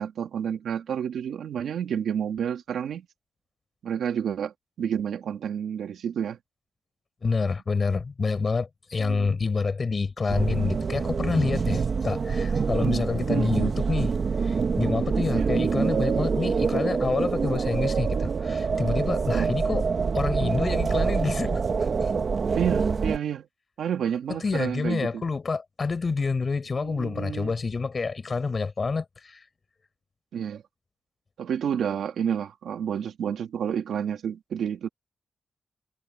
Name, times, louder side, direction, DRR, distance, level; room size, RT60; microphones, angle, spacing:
voice 1, 0.0-3.1 3.8-6.4 9.0-9.4 12.8-13.5 15.3-15.5 19.3-19.5 22.6-23.5 23.8-25.2 26.8-27.6 30.3-30.6 31.4-34.9, right 8 dB, 90° right, 1.8 m, -30 dB
voice 2, 7.2-14.1 14.4-19.8 20.1-22.1 24.4-29.4, left 4 dB, 40° left, 6.5 m, -28 dB
sound 1, 10.3-23.2, right 5 dB, 50° right, 1.3 m, -26 dB
cardioid pair, 105°, 0 cm